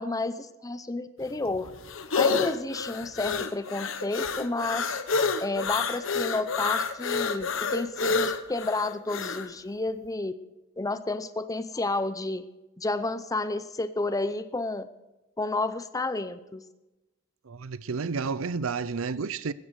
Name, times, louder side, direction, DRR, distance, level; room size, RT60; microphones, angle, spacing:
voice 1, 0.0-1.7 2.1-4.8 5.4-10.3 10.8-12.5 12.8-14.9 15.4-16.6, left 2 dB, 15° left, 0.6 m, -31 dB
sound 1, 1.2-9.5, left 4 dB, 65° left, 1.1 m, -29 dB
voice 2, 17.4-19.5, right 5 dB, 80° right, 0.6 m, -31 dB
16.0 x 14.0 x 4.9 m
head